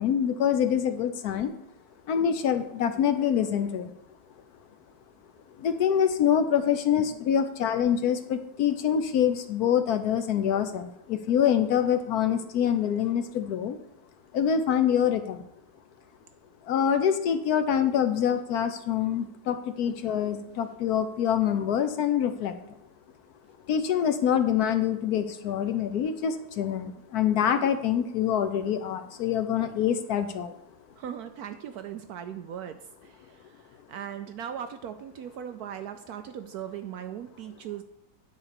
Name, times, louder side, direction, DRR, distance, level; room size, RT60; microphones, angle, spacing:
voice 1, 0.0-1.5 2.1-3.9 5.6-13.8 14.3-15.4 16.7-22.5 23.7-30.5, left 8 dB, 65° left, 9 dB, 1.0 m, -25 dB
voice 2, 31.0-37.8, right 9 dB, 80° right, 9 dB, 0.8 m, -39 dB
10.0 x 4.2 x 6.7 m, 0.79 s
omnidirectional pair, 2.1 m